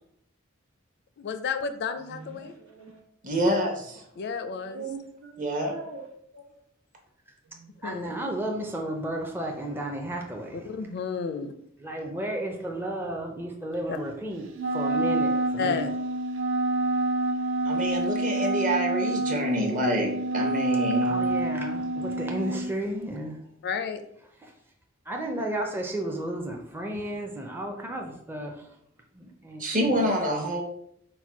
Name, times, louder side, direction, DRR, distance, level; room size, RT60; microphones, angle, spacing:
voice 1, 1.2-2.6 4.2-4.9 7.8-8.2 10.5-11.5 13.9-14.0 15.6-15.9 23.6-24.0, left 5 dB, 55° left, 9 dB, 0.4 m, -31 dB
voice 2, 3.2-4.0 5.4-5.7 17.6-21.2 29.6-30.6, equal, 40° right, 1 dB, 0.9 m, -27 dB
voice 3, 4.7-6.4, right 4 dB, 80° right, 0 dB, 1.1 m, -39 dB
voice 4, 7.8-10.7 11.8-14.5 14.7-15.9 21.0-23.4 24.4-24.5 25.1-28.7 29.1-29.9, right 1 dB, 10° right, 1 dB, 0.5 m, -33 dB
Wind instrument woodwind instrument, 14.6-22.7, right 2 dB, 65° right, 0.5 m, -27 dB
4.3 x 2.2 x 4.5 m, 0.71 s
head